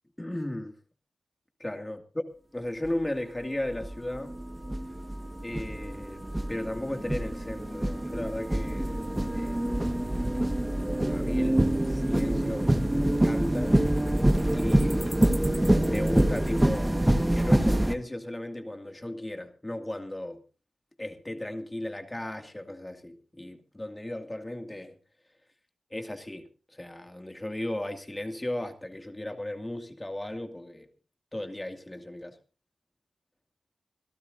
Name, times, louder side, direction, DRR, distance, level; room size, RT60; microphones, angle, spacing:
voice 1, 0.2-0.7 1.6-2.0 2.5-4.4 5.4-6.2 6.5-9.1 9.3-10.0 11.1-13.8 14.6-15.3 15.7-16.9 17.3-20.4 21.0-24.9 25.9-30.9 31.3-32.3, left 1 dB, 20° left, 2.3 m, -36 dB
sound 1, 2.8-2.9 3.7-17.9, right 1 dB, 15° right, 1.5 m, -26 dB
26.0 x 12.5 x 2.7 m
cardioid pair, 45°, 0 cm